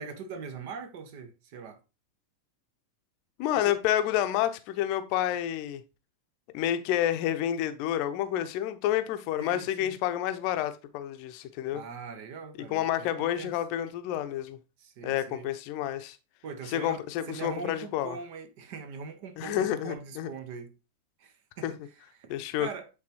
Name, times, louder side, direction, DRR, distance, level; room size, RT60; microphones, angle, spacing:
voice 1, 0.0-1.8 3.6-3.8 9.4-10.0 11.7-13.5 14.8-15.5 16.4-20.7 21.2-21.7 22.1-22.9, right 5 dB, 50° right, 1.1 m, -42 dB
voice 2, 3.4-5.8 6.5-11.8 12.7-14.6 15.0-16.2 16.7-18.2 19.4-20.3 21.6-21.7 22.3-22.7, left 11 dB, 45° left, 0.7 m, -29 dB
8.6 x 4.0 x 2.9 m
figure-of-eight pair, 90°, 0 cm